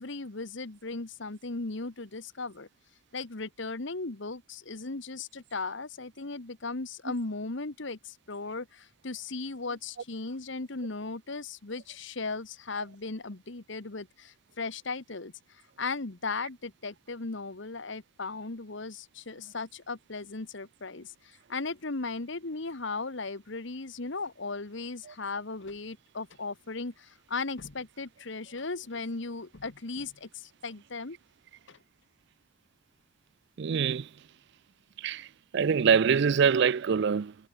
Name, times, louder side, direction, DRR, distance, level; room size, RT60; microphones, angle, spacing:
voice 1, 0.0-2.7 3.1-31.2 31.7-31.8, left 3 dB, 60° left, 1.3 m, -37 dB
voice 2, 33.6-34.1 35.0-37.3, right 6 dB, 55° right, 0.4 m, -25 dB
head